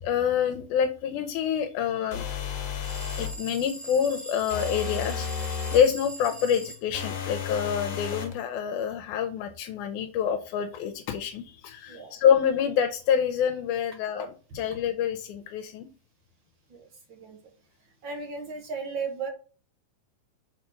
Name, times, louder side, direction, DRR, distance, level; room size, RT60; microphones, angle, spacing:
voice 1, 0.0-2.3 3.2-15.9, left 8 dB, 85° left, 7 dB, 2.1 m, -27 dB
sound 1, 2.1-3.4 4.5-5.9 6.9-8.4, left 7 dB, 60° left, 2.1 m, -33 dB
sound 2, 2.8-6.8, right 2 dB, 10° left, 2.1 m, -41 dB
voice 2, 11.9-12.2 14.7-14.8 16.7-17.4 18.0-19.3, right 5 dB, 55° right, 3 dB, 1.4 m, -36 dB
6.2 x 4.3 x 5.7 m, 0.38 s
omnidirectional pair, 3.5 m